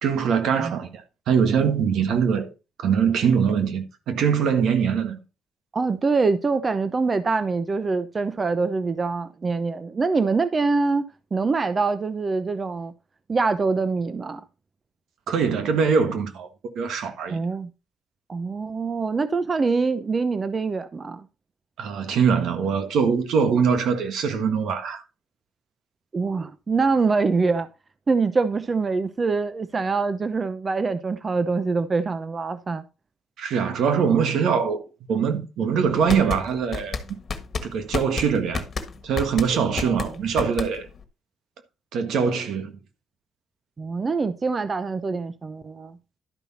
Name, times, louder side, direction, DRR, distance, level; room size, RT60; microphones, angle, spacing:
voice 1, 0.0-2.5 2.8-5.2 15.3-16.5 16.7-17.4 21.8-25.0 33.4-34.8 35.1-37.2 37.6-38.6 39.0-40.9 41.9-42.7, right 6 dB, 75° right, 1.4 m, -23 dB
voice 2, 5.7-11.0 11.3-12.9 13.3-14.4 17.3-17.7 18.3-21.3 26.1-27.7 28.1-32.8 39.7-40.0 43.8-46.0, right 4 dB, 35° right, 0.7 m, -24 dB
sound 1, 35.9-41.0, left 4 dB, 40° left, 1.5 m, -31 dB
12.0 x 5.5 x 4.2 m
cardioid pair, 90°, 0 cm